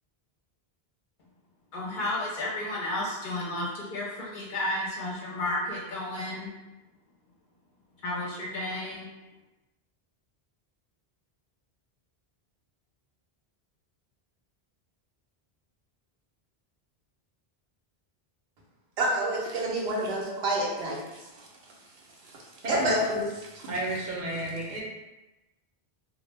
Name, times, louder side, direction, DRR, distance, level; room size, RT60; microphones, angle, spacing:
voice 1, 1.7-6.5 8.0-9.1, left 1 dB, 60° left, -4 dB, 0.7 m, -32 dB
voice 2, 19.0-21.2 22.7-23.0, right 2 dB, 85° right, -2 dB, 0.9 m, -28 dB
voice 3, 22.6-23.3 23.7-24.8, equal, 55° right, -4 dB, 0.7 m, -30 dB
2.1 x 2.0 x 3.2 m, 1.0 s
omnidirectional pair, 1.0 m